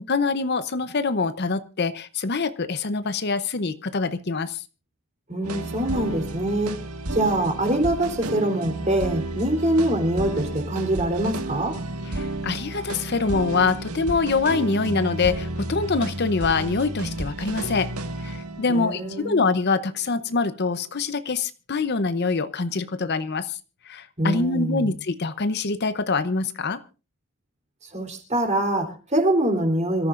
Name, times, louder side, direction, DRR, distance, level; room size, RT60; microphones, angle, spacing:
voice 1, 0.0-4.6 12.0-17.9 18.2-23.6 23.8-26.8, left 4 dB, 50° left, 13 dB, 0.7 m, -25 dB
voice 2, 5.3-6.8 7.1-11.8 18.7-19.4 24.2-24.9 27.9-30.1, right 1 dB, 30° right, 3 dB, 3.5 m, -24 dB
sound 1, 5.4-20.7, right 2 dB, 80° right, 1.7 m, -32 dB
26.5 x 14.0 x 2.5 m, 0.32 s
head